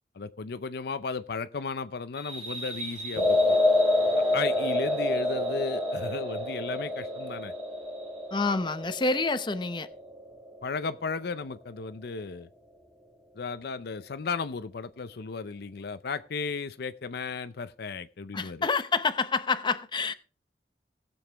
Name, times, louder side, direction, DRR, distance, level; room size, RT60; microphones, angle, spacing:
voice 1, 0.2-3.6 4.3-7.5 10.6-12.5 13.4-18.7, left 4 dB, 65° left, 0.6 m, -35 dB
sound 1, 2.2-9.4, right 2 dB, 35° right, 1.9 m, -43 dB
sound 2, 3.2-11.5, left 1 dB, 5° right, 1.8 m, -28 dB
voice 2, 8.3-9.9 18.3-20.1, left 4 dB, 25° left, 0.7 m, -27 dB
18.5 x 7.1 x 3.4 m
head